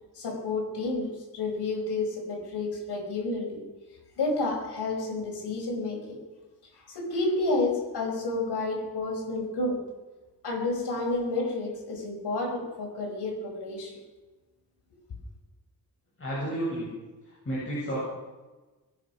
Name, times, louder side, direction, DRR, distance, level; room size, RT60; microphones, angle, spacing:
voice 1, 0.1-3.6 4.2-6.2 6.7-9.8 10.4-14.0, left 2 dB, 85° left, 0 dB, 5.7 m, -30 dB
voice 2, 16.2-16.9 17.4-18.0, right 1 dB, 35° left, -7 dB, 7.6 m, -31 dB
23.0 x 10.5 x 6.0 m, 1.2 s
wide cardioid pair, 130°, 39 cm